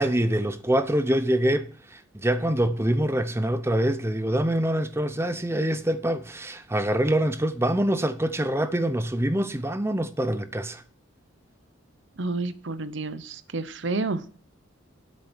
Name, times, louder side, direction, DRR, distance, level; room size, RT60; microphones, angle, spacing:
voice 1, 0.0-10.8, right 1 dB, 10° right, 0.6 m, -25 dB
voice 2, 12.2-14.2, right 3 dB, 60° right, 0.9 m, -30 dB
9.9 x 8.5 x 6.2 m
head